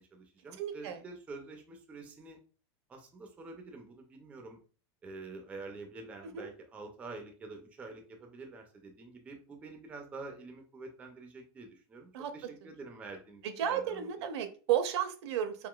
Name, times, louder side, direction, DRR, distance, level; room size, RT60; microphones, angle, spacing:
voice 1, 0.0-2.4 2.9-4.6 5.0-14.3, right 3 dB, 10° right, 3 dB, 0.3 m, -47 dB
voice 2, 0.6-1.0 6.3-6.5 12.1-12.3 13.4-15.7, right 10 dB, 75° right, 9 dB, 0.6 m, -33 dB
3.7 x 2.6 x 2.2 m, 0.37 s
supercardioid pair, 165°, 14 cm